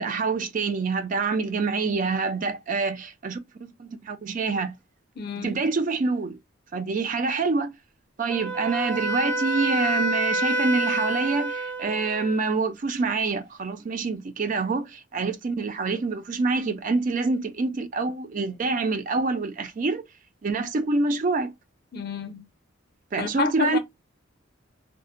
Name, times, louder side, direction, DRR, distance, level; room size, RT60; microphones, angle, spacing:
voice 1, 0.0-4.7 5.4-6.4 6.7-7.8 8.2-20.0 20.4-21.5 23.1-23.8, right 4 dB, 40° right, 0.4 m, -26 dB
voice 2, 5.2-5.7 21.9-22.4 23.2-23.8, left 4 dB, 50° left, 0.5 m, -29 dB
Wind instrument woodwind instrument, 8.3-12.3, right 1 dB, 70° right, 0.8 m, -27 dB
2.6 x 2.1 x 2.4 m
head